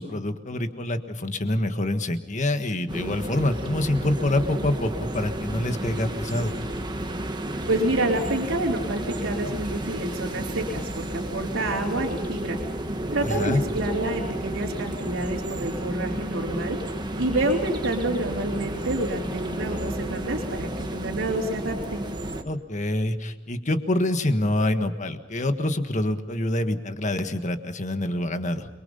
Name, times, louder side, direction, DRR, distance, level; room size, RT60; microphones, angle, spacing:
voice 1, 0.0-6.5 13.2-13.6 22.4-28.7, left 1 dB, 40° left, 8 dB, 1.5 m, -26 dB
sound 1, 2.9-22.4, right 1 dB, 20° right, 1.4 m, -32 dB
voice 2, 7.7-12.6 13.1-16.8 17.2-22.0, right 1 dB, 85° right, -4 dB, 3.3 m, -28 dB
29.0 x 23.0 x 5.6 m, 1.0 s
head